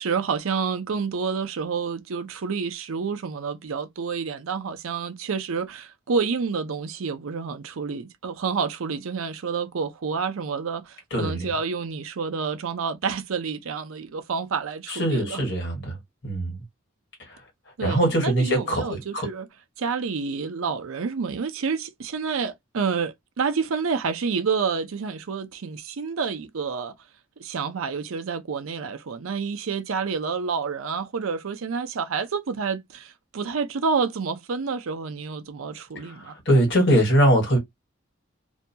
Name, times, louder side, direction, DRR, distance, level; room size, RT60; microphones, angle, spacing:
voice 1, 0.0-15.4 17.8-19.5 19.8-26.9 27.4-36.4, right 5 dB, 80° right, 0.5 m, -29 dB
voice 2, 11.1-11.5 14.9-16.0 16.2-16.6 17.8-19.3 36.0-36.1 36.4-37.6, right 1 dB, 55° left, 1.5 m, -22 dB
2.7 x 2.2 x 2.7 m
head